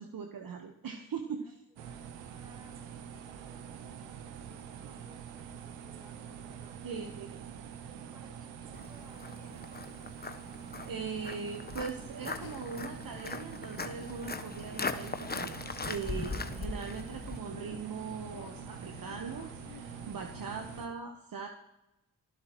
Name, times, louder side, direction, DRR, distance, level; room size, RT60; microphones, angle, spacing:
voice 1, 0.0-1.5 6.8-7.5 10.8-21.5, right 6 dB, 50° right, 4 dB, 1.3 m, -40 dB
voice 2, 1.4-6.8 8.0-9.9, equal, 10° right, 1 dB, 5.6 m, -61 dB
sound 1, 1.8-20.9, right 8 dB, 85° right, 1.1 m, -46 dB
Walk footsteps, 8.7-17.4, left 3 dB, 20° left, 1.0 m, -40 dB
sound 2, 12.4-20.9, left 16 dB, 85° left, 0.6 m, -53 dB
26.0 x 11.5 x 3.1 m, 0.94 s
hypercardioid pair, 40°, 44 cm